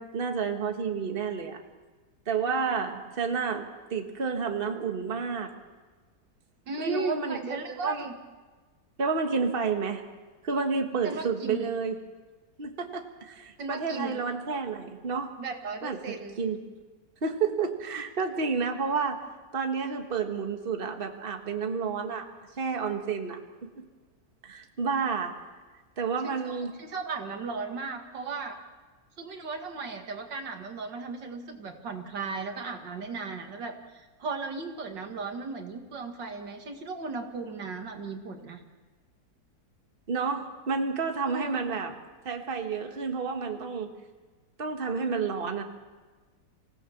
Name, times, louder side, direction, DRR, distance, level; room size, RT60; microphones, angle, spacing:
voice 1, 0.0-1.6 2.3-5.5 6.8-8.0 9.0-10.0 10.4-12.0 12.6-15.3 15.8-16.6 17.2-19.3 19.5-22.2 22.6-23.8 24.4-25.3 26.0-26.8 40.1-42.0 42.2-43.9 44.6-45.6, right 5 dB, 35° right, 4 dB, 1.6 m, -30 dB
voice 2, 6.7-8.1 11.0-11.7 13.6-14.2 15.4-16.4 26.2-28.6 29.2-33.7 34.2-38.6 41.3-41.6, right 4 dB, 80° right, 4 dB, 2.6 m, -36 dB
25.5 x 17.0 x 7.2 m, 1.3 s
omnidirectional pair, 1.9 m